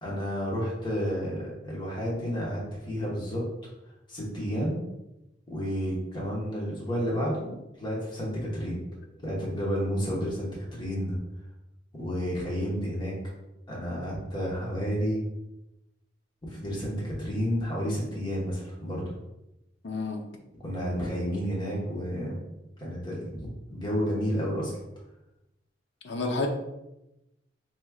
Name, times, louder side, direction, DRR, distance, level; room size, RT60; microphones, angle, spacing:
voice 1, 0.0-3.7 4.1-4.8 5.5-8.8 9.2-11.2 12.0-13.1 13.7-15.2 16.5-19.1 20.6-22.4 22.8-24.7, equal, 25° left, -6 dB, 1.1 m, -31 dB
voice 2, 19.8-20.3 26.0-26.5, left 3 dB, 65° left, 2 dB, 0.6 m, -30 dB
4.7 x 3.1 x 2.3 m, 0.91 s
head